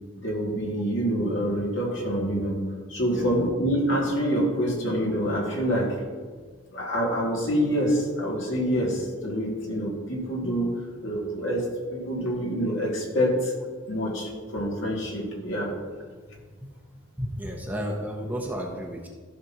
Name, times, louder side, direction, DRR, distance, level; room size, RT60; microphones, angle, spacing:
voice 1, 0.2-2.6 2.9-6.0 6.7-13.5 13.9-15.7, equal, 70° left, -3 dB, 2.3 m, -26 dB
voice 2, 3.1-3.5 16.6-16.7 17.2-19.1, equal, 10° right, 0 dB, 0.9 m, -32 dB
14.0 x 6.1 x 3.0 m, 1.5 s
head